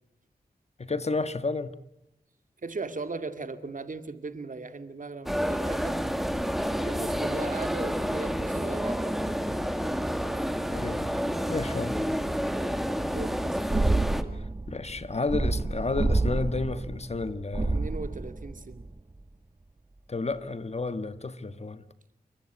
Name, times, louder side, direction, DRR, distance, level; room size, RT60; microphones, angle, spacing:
voice 1, 0.8-1.8 10.7-11.1 11.5-12.0 14.3-17.9 20.1-21.8, left 3 dB, 45° left, 12 dB, 1.5 m, -31 dB
voice 2, 2.6-5.9 6.8-9.2 13.1-13.6 17.7-18.9, right 3 dB, 55° right, 9 dB, 2.3 m, -38 dB
sound 1, 5.3-14.2, equal, ahead, 2.1 m, -29 dB
sound 2, 13.7-19.1, right 2 dB, 30° right, 1.3 m, -29 dB
28.5 x 23.5 x 8.3 m, 0.79 s
wide cardioid pair, 105°, 16 cm